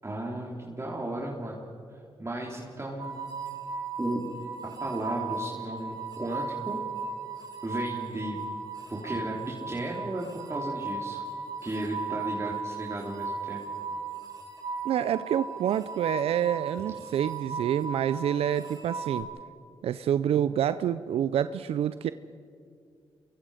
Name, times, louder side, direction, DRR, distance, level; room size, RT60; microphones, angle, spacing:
voice 1, 0.0-1.6 1.9-3.2 4.0-4.3 4.8-6.8 7.6-8.4 8.9-11.2 11.6-13.6, right 1 dB, 25° right, -3 dB, 3.7 m, -34 dB
sound 1, 3.0-19.2, right 4 dB, 45° right, 7.1 m, -36 dB
voice 2, 14.8-19.3 19.8-22.1, right 10 dB, 75° right, 13 dB, 0.5 m, -27 dB
28.0 x 23.0 x 5.1 m, 2.3 s
supercardioid pair, 45°, 10 cm